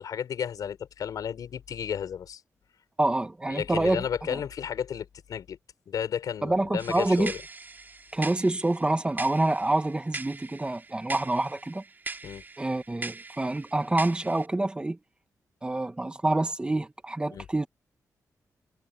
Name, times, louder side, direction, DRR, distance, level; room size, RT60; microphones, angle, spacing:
voice 1, 0.0-2.4 3.5-5.6 5.9-7.4 12.2-12.4 17.3-17.5, left 8 dB, 90° left, 5.3 m, -33 dB
voice 2, 3.0-4.0 4.3-4.4 6.4-7.3 8.1-11.8 12.6-15.0 15.6-17.7, right 2 dB, 15° right, 1.5 m, -27 dB
sound 1, 6.8-14.5, right 4 dB, 30° right, 3.9 m, -41 dB
wide cardioid pair, 140°, 6 cm